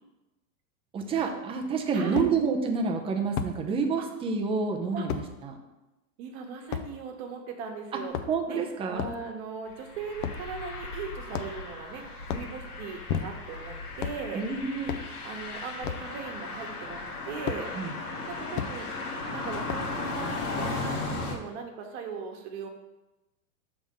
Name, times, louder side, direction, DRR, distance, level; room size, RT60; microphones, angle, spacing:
voice 1, 0.9-5.6 7.9-8.0 8.3-9.1 14.3-14.9 17.8-17.9, right 5 dB, 15° right, 3 dB, 0.5 m, -28 dB
sound 1, 1.2-1.3 2.2-2.3 3.4-3.6 5.1-5.3 6.7-6.9 8.0-8.5 9.0-9.2 10.2-10.5 11.3-11.7 12.2-12.5 13.1-13.6 14.0-14.2 14.9-15.1 15.8-16.1 17.5-17.6 18.5-18.7 19.7-20.0, left 8 dB, 35° left, 0.4 m, -33 dB
voice 2, 1.9-2.3 4.9-5.0 6.2-8.1 8.5-8.6 8.9-12.0 12.3-14.4 15.2-17.0 17.2-17.7 18.3-18.9 19.3-22.7, right 5 dB, 45° right, 4 dB, 1.2 m, -39 dB
sound 2, 9.7-21.4, left 3 dB, 85° left, 1.6 m, -36 dB
6.2 x 3.6 x 5.4 m, 1.0 s
hypercardioid pair, 130°, 44 cm